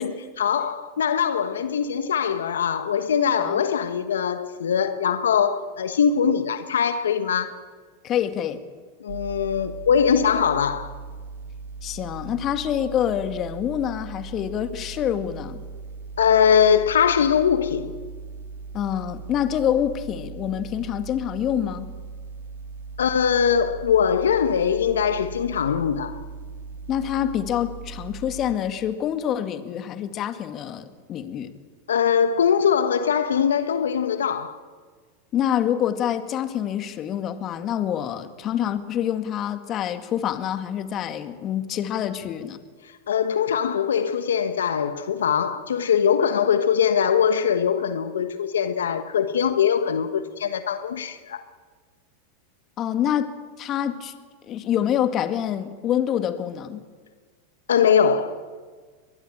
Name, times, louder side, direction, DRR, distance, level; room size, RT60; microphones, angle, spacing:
voice 1, 0.0-7.5 9.0-10.9 16.2-17.9 23.0-26.2 31.9-34.6 42.8-51.4 57.7-58.4, left 7 dB, 85° left, 1.2 m, -22 dB
voice 2, 8.0-8.6 11.8-15.6 18.7-21.9 26.9-31.5 35.3-42.6 52.8-53.3 53.6-54.1 54.5-56.9, left 10 dB, 40° left, 2.0 m, -26 dB
sound 1, 9.1-28.5, right 4 dB, 80° right, 2.1 m, -39 dB
23.5 x 20.5 x 8.9 m
hypercardioid pair, 100°, 0 cm